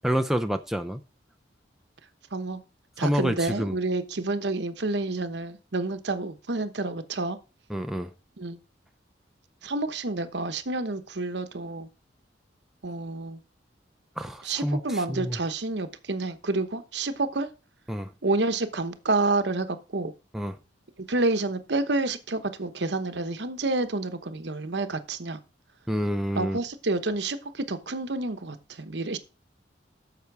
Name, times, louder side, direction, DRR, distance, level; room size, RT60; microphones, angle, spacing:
voice 1, 0.0-1.0 3.0-3.8 7.7-8.1 14.2-15.4 17.9-18.1 20.3-20.5 25.9-26.6, equal, ahead, 0.5 m, -28 dB
voice 2, 2.3-2.6 3.0-7.4 8.4-8.6 9.6-11.9 12.8-13.4 14.4-17.5 18.2-20.1 21.1-25.4 26.4-29.2, right 2 dB, 65° right, 1.0 m, -29 dB
10.0 x 6.8 x 4.7 m
head